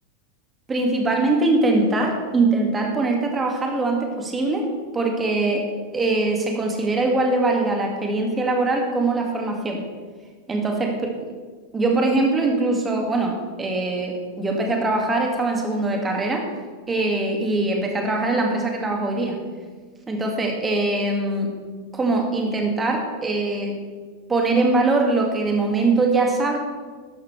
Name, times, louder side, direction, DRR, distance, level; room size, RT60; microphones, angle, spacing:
voice 1, 0.7-4.7 4.9-5.7 5.9-9.8 10.5-11.3 11.7-16.5 16.9-19.4 20.1-21.5 21.9-23.8 24.3-26.6, right 2 dB, 15° right, 2 dB, 2.1 m, -22 dB
13.0 x 12.0 x 3.3 m, 1.5 s
figure-of-eight pair, 90°, 0 cm